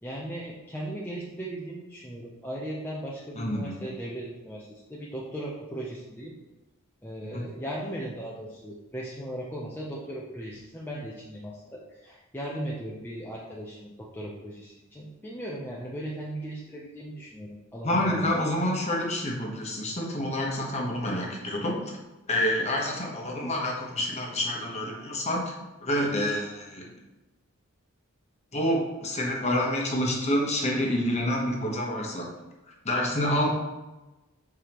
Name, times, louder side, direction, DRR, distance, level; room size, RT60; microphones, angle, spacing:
voice 1, 0.0-6.3 7.0-18.5, right 1 dB, 10° left, -5 dB, 0.6 m, -37 dB
voice 2, 3.4-3.8 7.3-7.4 17.8-22.0 22.3-25.5 25.8-26.9 28.5-32.3 32.8-33.5, left 1 dB, 30° left, -1 dB, 1.1 m, -28 dB
7.0 x 4.7 x 3.0 m, 1.1 s
head